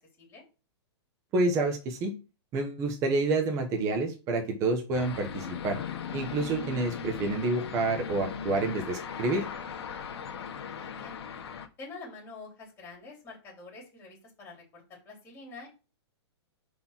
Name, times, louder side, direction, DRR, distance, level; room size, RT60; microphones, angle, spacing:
voice 1, 1.3-2.1 2.5-5.8 6.1-9.5, right 2 dB, 20° right, 3 dB, 1.1 m, -28 dB
sound 1, 4.9-11.7, left 7 dB, 65° left, 1.5 m, -38 dB
voice 2, 10.7-11.1 11.8-15.7, left 3 dB, 15° left, -2 dB, 4.0 m, -47 dB
5.2 x 4.6 x 5.9 m, 0.31 s
hypercardioid pair, 165°, 15 cm